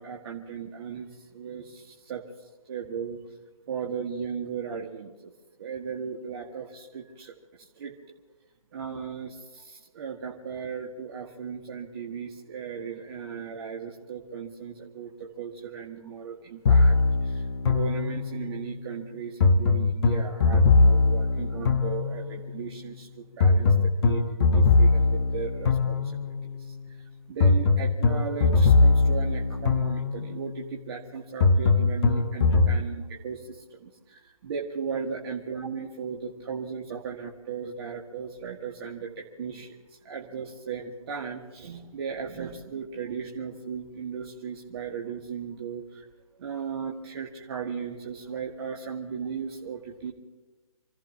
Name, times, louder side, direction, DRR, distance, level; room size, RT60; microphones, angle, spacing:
voice 1, 0.0-3.4 3.7-5.3 5.6-8.2 8.7-46.1 46.4-50.1, right 6 dB, 45° right, -1 dB, 2.1 m, -37 dB
sound 1, 16.7-18.5 19.4-22.5 23.4-26.5 27.4-30.4 31.4-32.8, left 3 dB, 45° left, 1.4 m, -21 dB
28.5 x 17.0 x 3.0 m, 1.2 s
figure-of-eight pair, 145°, 18 cm